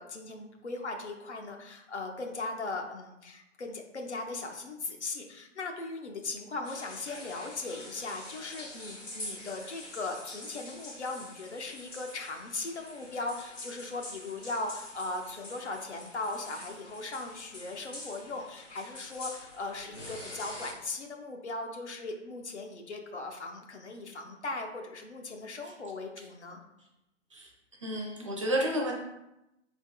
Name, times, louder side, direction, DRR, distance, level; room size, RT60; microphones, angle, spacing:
voice 1, 0.0-26.6, left 3 dB, 65° left, 2 dB, 0.8 m, -38 dB
sound 1, 6.6-20.7, left 1 dB, 85° left, 1.4 m, -46 dB
voice 2, 27.8-28.9, right 1 dB, 25° right, -1 dB, 0.5 m, -30 dB
4.7 x 3.5 x 2.2 m, 0.89 s
figure-of-eight pair, 130°, 37 cm